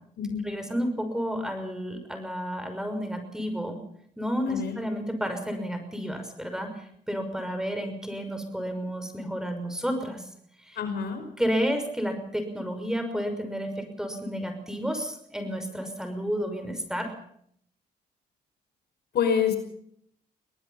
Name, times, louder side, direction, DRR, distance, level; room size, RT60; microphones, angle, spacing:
voice 1, 0.4-3.8 4.2-10.2 10.6-10.8 11.4-17.1, equal, 5° right, 7 dB, 6.0 m, -31 dB
voice 2, 10.8-11.2 19.1-19.6, left 7 dB, 75° left, 6 dB, 5.5 m, -26 dB
24.0 x 19.0 x 5.7 m, 0.66 s
cardioid pair, 75°, 17 cm